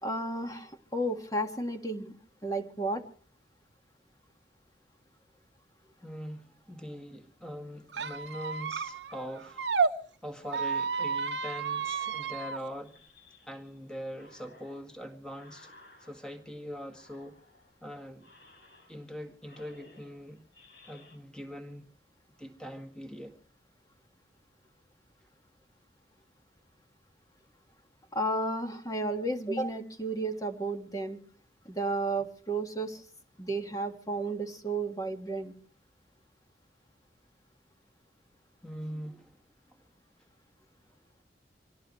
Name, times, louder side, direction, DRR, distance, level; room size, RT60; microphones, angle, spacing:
voice 1, 0.0-2.1 2.4-3.0 28.1-31.2 31.6-33.0 33.4-35.6, right 2 dB, 20° left, 1.7 m, -32 dB
voice 2, 6.0-9.6 10.2-13.0 13.5-15.7 16.0-17.4 17.8-18.3 18.9-20.4 20.9-21.9 22.4-23.4 38.6-39.4, equal, 5° left, 1.9 m, -42 dB
Squeak, 7.9-9.9 10.5-12.6, right 5 dB, 90° right, 1.0 m, -31 dB
sound 1, 11.7-13.8 14.1-16.5 16.9-17.8 18.2-19.1 19.4-21.2, left 2 dB, 65° left, 4.9 m, -58 dB
25.5 x 17.5 x 3.1 m
head